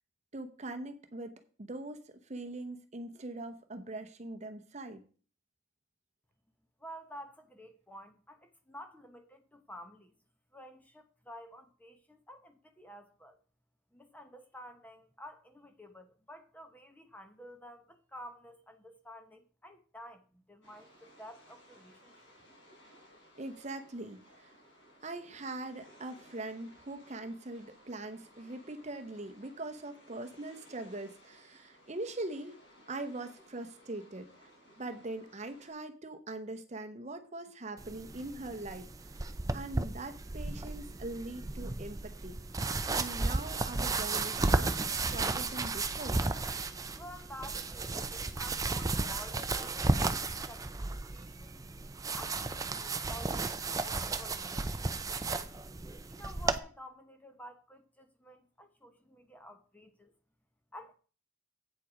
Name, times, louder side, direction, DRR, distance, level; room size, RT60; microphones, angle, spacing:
voice 1, 0.3-5.0 23.4-24.5 25.0-32.6 32.9-34.5 34.8-42.7 42.9-46.2, right 2 dB, 35° right, 0.8 m, -42 dB
voice 2, 6.8-10.1 10.5-13.4 13.9-22.3 47.0-51.6 52.1-55.6 56.1-60.1 60.7-60.9, equal, 10° left, 0.8 m, -51 dB
sound 1, 20.6-35.7, equal, 60° left, 4.1 m, -60 dB
sound 2, 37.8-56.6, right 3 dB, 15° right, 0.5 m, -34 dB
8.3 x 7.5 x 5.0 m
head